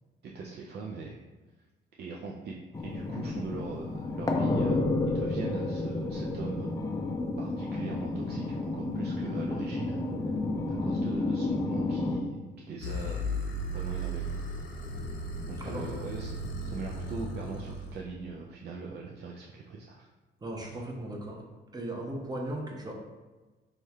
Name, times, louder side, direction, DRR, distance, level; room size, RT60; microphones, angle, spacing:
voice 1, 0.2-1.2 1.9-6.7 7.4-10.4 10.7-13.3 13.7-14.4 15.5-20.1, right 4 dB, 55° right, -1 dB, 0.4 m, -41 dB
sound 1, 2.7-12.2, left 2 dB, 20° left, 0.4 m, -31 dB
sound 2, 12.8-18.0, equal, 75° left, 0.6 m, -36 dB
voice 2, 20.4-21.4 21.7-22.9, right 1 dB, 20° right, 0 dB, 0.8 m, -37 dB
3.2 x 2.4 x 4.1 m, 1.2 s
cardioid pair, 90°, 20 cm